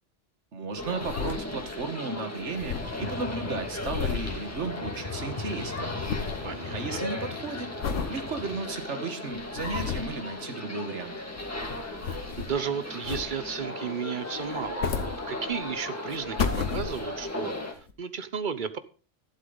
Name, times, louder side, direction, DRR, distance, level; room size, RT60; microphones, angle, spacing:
voice 1, 0.5-5.9 6.7-7.7 8.1-11.2, right 4 dB, 70° right, 9 dB, 1.7 m, -34 dB
sound 1, 0.8-1.9 2.2-2.3 2.4-5.2 5.5-6.5 6.9-7.3 7.8-8.2 8.7-8.8 9.3-10.2 11.2-12.7 13.0-13.6 14.5-15.7 16.1-17.3 17.9-18.0, left 6 dB, 85° left, 1.4 m, -33 dB
sound 2, 0.8-17.7, left 1 dB, 10° left, 2.1 m, -37 dB
sound 3, 2.8-8.6, left 5 dB, 35° left, 1.1 m, -40 dB
voice 2, 6.4-7.0 12.0-18.8, right 6 dB, 45° right, 13 dB, 0.9 m, -34 dB
12.0 x 11.5 x 3.9 m, 0.36 s
omnidirectional pair, 1.2 m